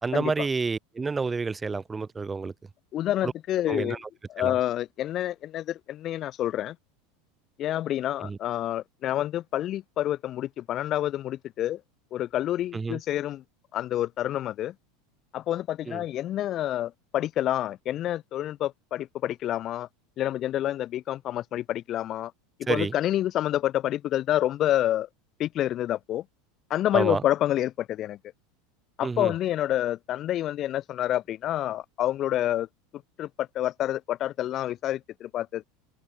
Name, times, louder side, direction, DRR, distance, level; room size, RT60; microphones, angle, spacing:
voice 1, 0.0-2.5 3.2-3.3 3.7-4.0 4.4-4.5 8.2-8.4 12.7-13.0 15.9-16.0 22.7-23.0 26.9-27.2 29.0-29.3, right 4 dB, 15° right, 5.5 m, -29 dB
voice 2, 2.9-4.0 4.3-6.8 7.6-11.8 12.1-13.4 13.7-14.7 15.3-19.9 20.2-22.3 22.7-25.1 25.4-26.2 26.7-28.2 29.0-32.7 33.2-35.6, left 12 dB, 40° left, 3.7 m, -28 dB
supercardioid pair, 130°, 0 cm